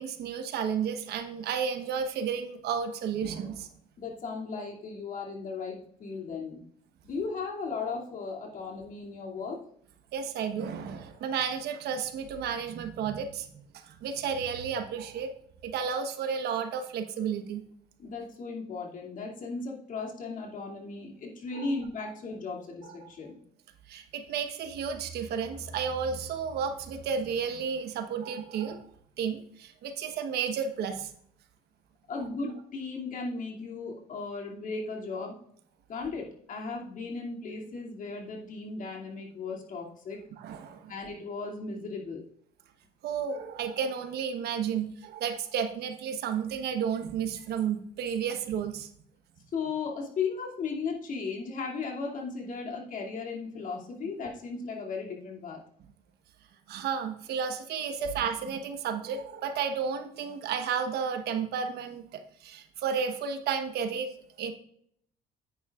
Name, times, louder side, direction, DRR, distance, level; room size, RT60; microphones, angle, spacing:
voice 1, 0.0-3.7 10.1-15.3 15.6-17.6 21.5-21.7 23.9-28.8 29.2-31.1 40.4-40.9 43.0-48.9 56.7-64.5, right 7 dB, 75° right, 7 dB, 1.2 m, -32 dB
voice 2, 4.0-6.6 7.0-9.6 18.0-23.4 32.1-35.4 35.9-40.2 40.9-42.2 49.5-55.6 58.0-58.1, left 4 dB, 50° left, -1 dB, 2.6 m, -36 dB
9.6 x 9.4 x 2.5 m, 0.66 s
cardioid pair, 110°, 17 cm